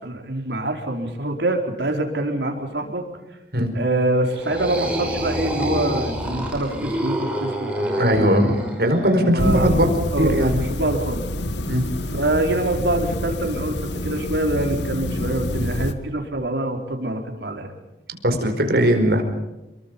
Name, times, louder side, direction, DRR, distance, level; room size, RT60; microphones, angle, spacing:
voice 1, 0.0-3.0 3.7-8.6 9.2-9.7 10.1-11.2 12.1-17.7, right 1 dB, 85° right, 3 dB, 4.4 m, -25 dB
sound 1, 4.3-9.1, right 1 dB, 5° right, 5.3 m, -27 dB
voice 2, 8.0-9.9 10.2-10.5 11.7-11.9 18.2-19.2, equal, 65° right, 5 dB, 4.9 m, -19 dB
sound 2, 9.4-15.9, left 1 dB, 90° left, 1.8 m, -27 dB
29.0 x 23.0 x 5.4 m, 1.0 s
head